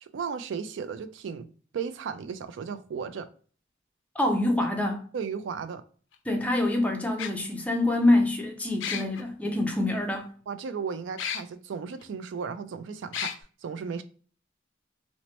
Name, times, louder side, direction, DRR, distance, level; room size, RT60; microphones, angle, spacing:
voice 1, 0.0-3.3 5.1-5.8 9.0-9.1 10.5-14.0, right 6 dB, 80° right, 0.3 m, -35 dB
voice 2, 4.2-5.1 6.3-10.3, left 1 dB, 10° left, 0.4 m, -25 dB
sound 1, 4.6-4.7 6.1-6.2 7.2-7.3 8.8-9.2 11.2-11.4 12.0-12.1 13.1-13.3, left 8 dB, 80° left, 0.4 m, -32 dB
3.0 x 2.1 x 2.8 m
head